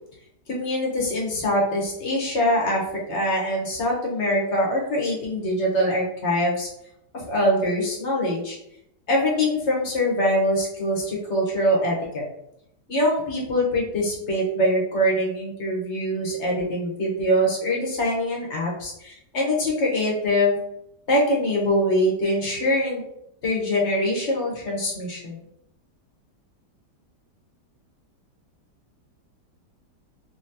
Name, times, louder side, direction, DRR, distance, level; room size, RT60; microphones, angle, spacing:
voice 1, 0.5-6.7 7.1-8.6 9.1-12.2 12.9-20.6 21.1-23.0 23.4-25.4, equal, 45° left, -3 dB, 1.2 m, -23 dB
4.0 x 3.0 x 2.7 m, 0.77 s
omnidirectional pair, 1.8 m